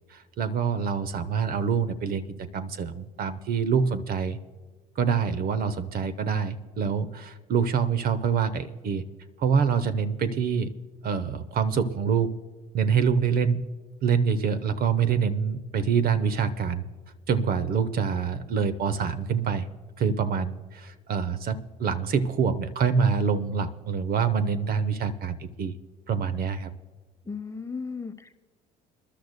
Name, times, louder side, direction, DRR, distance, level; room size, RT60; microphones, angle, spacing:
voice 1, 0.0-4.4 5.0-9.0 9.4-10.7 11.0-12.3 12.7-13.7 14.0-16.8 17.3-19.7 20.0-25.7 26.1-26.7, right 6 dB, 50° right, 11 dB, 0.8 m, -26 dB
voice 2, 27.2-28.3, left 5 dB, 15° left, 9 dB, 0.9 m, -35 dB
27.0 x 11.5 x 2.2 m, 1.4 s
hypercardioid pair, 65°, 19 cm